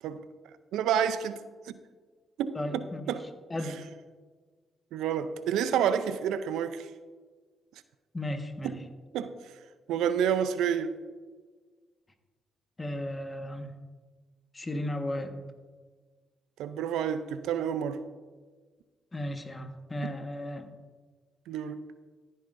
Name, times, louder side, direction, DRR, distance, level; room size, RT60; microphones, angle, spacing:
voice 1, 0.7-1.8 2.4-3.2 4.9-6.9 8.6-8.8 9.1-9.4 9.9-11.0 16.6-18.0 21.5-21.8, right 8 dB, 80° right, 0.5 m, -29 dB
voice 2, 2.5-3.1 3.5-3.9 8.1-8.8 12.8-13.7 14.5-15.3 19.1-20.7, left 1 dB, 25° left, 1.4 m, -35 dB
14.5 x 9.1 x 2.6 m
supercardioid pair, 50°, 0 cm